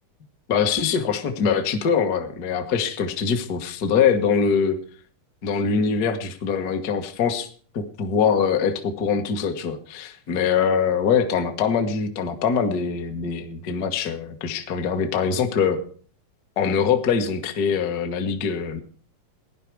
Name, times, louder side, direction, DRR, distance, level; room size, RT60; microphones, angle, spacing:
voice 1, 0.5-4.8 5.4-15.8 16.6-18.8, left 6 dB, 55° left, 6 dB, 1.0 m, -23 dB
16.0 x 11.0 x 4.7 m, 0.44 s
omnidirectional pair, 3.9 m